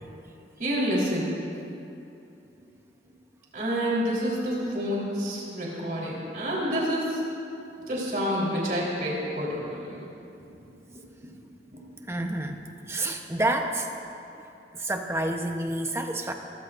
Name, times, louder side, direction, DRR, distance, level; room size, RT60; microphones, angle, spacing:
voice 1, 0.6-1.3 3.5-7.2 7.9-10.0, equal, 50° right, -5 dB, 3.9 m, -28 dB
voice 2, 12.1-12.6 12.9-13.9 14.7-16.3, right 1 dB, 15° right, 4 dB, 0.9 m, -28 dB
28.0 x 15.0 x 2.6 m, 2.7 s
head